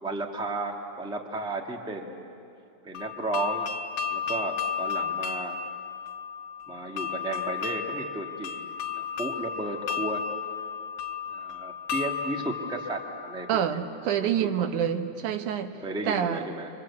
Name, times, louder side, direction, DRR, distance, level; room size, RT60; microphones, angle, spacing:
voice 1, 0.0-2.3 2.8-3.7 4.1-5.6 6.7-8.6 8.9-10.2 10.5-10.6 11.3-13.8 14.2-14.7 15.8-16.7, right 2 dB, ahead, 1 dB, 1.2 m, -34 dB
sound 1, 2.9-13.8, left 7 dB, 55° left, 1.9 m, -33 dB
voice 2, 13.5-15.8 16.1-16.5, right 9 dB, 85° right, 7 dB, 2.6 m, -27 dB
27.0 x 25.0 x 8.4 m, 2.6 s
omnidirectional pair, 3.4 m